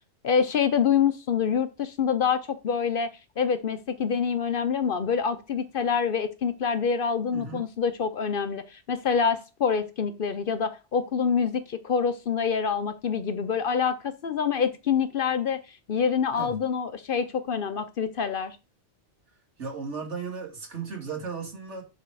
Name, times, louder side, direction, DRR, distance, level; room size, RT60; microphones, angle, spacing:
voice 1, 0.2-3.1 3.4-18.6, left 6 dB, 55° left, 0.8 m, -26 dB
voice 2, 7.3-7.7 16.3-16.5 19.6-21.8, right 5 dB, 75° right, 2.4 m, -35 dB
10.5 x 4.1 x 4.7 m
omnidirectional pair, 1.2 m